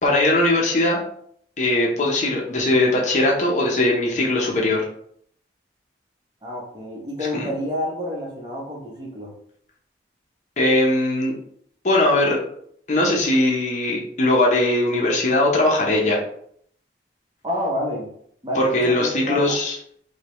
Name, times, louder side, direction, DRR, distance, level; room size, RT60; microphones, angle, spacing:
voice 1, 0.0-1.0 1.6-4.9 7.3-7.5 10.6-11.3 11.8-12.4 12.9-16.2 18.6-19.8, left 1 dB, 40° left, -2 dB, 0.8 m, -20 dB
voice 2, 6.4-9.3 17.4-18.1 18.4-19.6, left 1 dB, 25° right, -2 dB, 0.9 m, -29 dB
4.9 x 2.3 x 3.0 m, 0.66 s
head